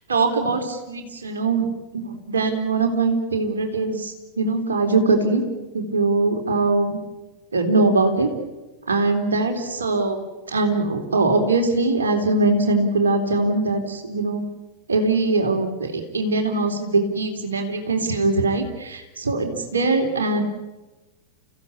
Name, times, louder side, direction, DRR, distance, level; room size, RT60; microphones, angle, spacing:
voice 1, 0.1-1.7 1.9-5.4 5.7-7.0 7.5-8.3 8.9-10.2 10.5-14.4 14.9-20.4, right 3 dB, 70° right, 4 dB, 3.8 m, -22 dB
30.0 x 16.0 x 8.4 m, 1.1 s
figure-of-eight pair, 90°, 0 cm